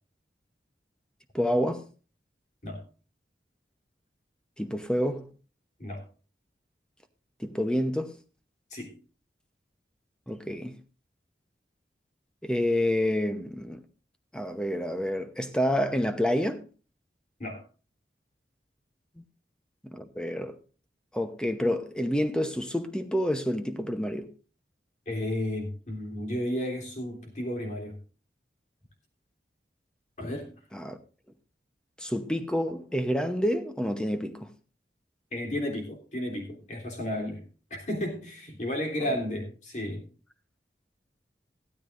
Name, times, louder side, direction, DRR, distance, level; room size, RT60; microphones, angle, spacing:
voice 1, 1.3-1.9 4.6-5.3 7.4-8.2 10.3-10.8 12.4-13.8 14.3-16.7 19.8-20.6 21.1-24.3 30.7-31.0 32.0-34.5, equal, 5° left, 0.9 m, -28 dB
voice 2, 25.1-28.0 30.2-30.5 35.3-37.4 37.7-40.0, left 1 dB, 45° left, 3.3 m, -33 dB
15.0 x 12.5 x 2.6 m
head